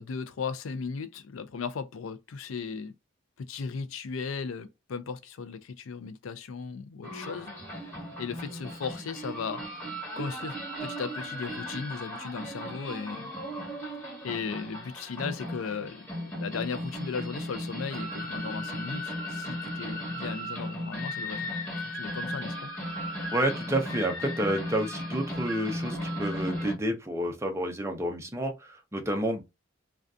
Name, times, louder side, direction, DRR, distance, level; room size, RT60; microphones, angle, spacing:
voice 1, 0.0-2.9 3.4-7.5 8.2-9.6 10.2-13.3 14.2-21.5 21.8-22.7, left 5 dB, 90° left, 0.4 m, -36 dB
sound 1, 7.0-26.7, equal, 10° left, 1.2 m, -36 dB
voice 2, 23.3-29.4, right 1 dB, 15° right, 0.5 m, -30 dB
2.5 x 2.3 x 2.3 m
head